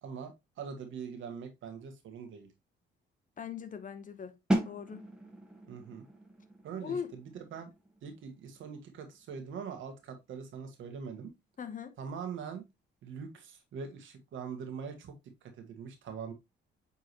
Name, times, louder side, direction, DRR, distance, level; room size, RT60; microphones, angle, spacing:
voice 1, 0.0-2.5 5.7-6.1 6.6-7.7 8.0-11.3 12.0-12.6 13.0-15.1 15.6-16.3, right 6 dB, 75° right, 1.6 m, -42 dB
voice 2, 3.4-4.4 4.6-5.1 6.8-7.1 11.6-11.9, left 7 dB, 40° left, 0.9 m, -39 dB
sound 1, 4.5-10.2, right 1 dB, 5° right, 1.7 m, -38 dB
8.3 x 3.7 x 3.0 m
cardioid pair, 90°, 20 cm